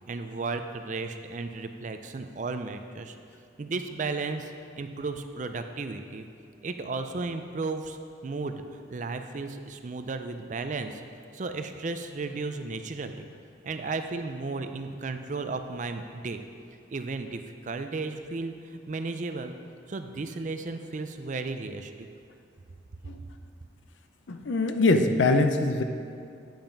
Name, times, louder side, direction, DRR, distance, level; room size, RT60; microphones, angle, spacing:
voice 1, 0.0-3.2 3.6-4.5 4.8-6.3 6.6-11.0 11.3-13.3 13.6-16.4 16.9-19.5 19.9-22.1, right 3 dB, 40° right, 8 dB, 0.4 m, -34 dB
voice 2, 24.3-25.8, left 2 dB, 75° left, 7 dB, 0.6 m, -23 dB
8.8 x 5.6 x 5.2 m, 2.4 s
head